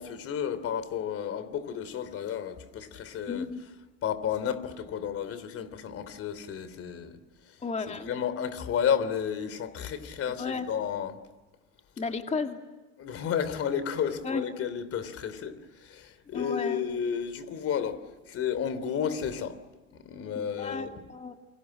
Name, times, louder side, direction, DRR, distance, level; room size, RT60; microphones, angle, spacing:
voice 1, 0.0-3.5 4.0-7.2 7.9-11.2 13.0-19.6 19.9-20.9, left 8 dB, 45° left, 3.2 m, -32 dB
voice 2, 3.3-3.6 7.6-8.1 10.3-10.7 12.0-12.6 14.2-14.4 16.3-16.9 20.3-21.3, left 4 dB, 20° left, 2.4 m, -33 dB
29.0 x 25.5 x 7.8 m
supercardioid pair, 95°, 33 cm